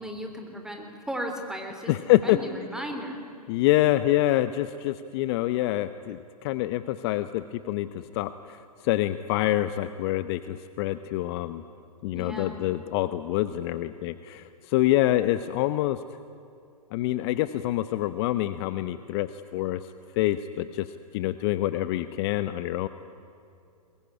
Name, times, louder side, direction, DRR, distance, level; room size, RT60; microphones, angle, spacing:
voice 1, 0.0-3.2 12.1-12.6, equal, 5° right, 4 dB, 3.2 m, -36 dB
voice 2, 1.9-2.4 3.5-11.6 12.0-16.0 16.9-19.8 20.2-20.9 21.1-22.9, left 15 dB, 40° left, 12 dB, 0.8 m, -26 dB
22.0 x 21.5 x 9.9 m, 2.5 s
hypercardioid pair, 120°, 20 cm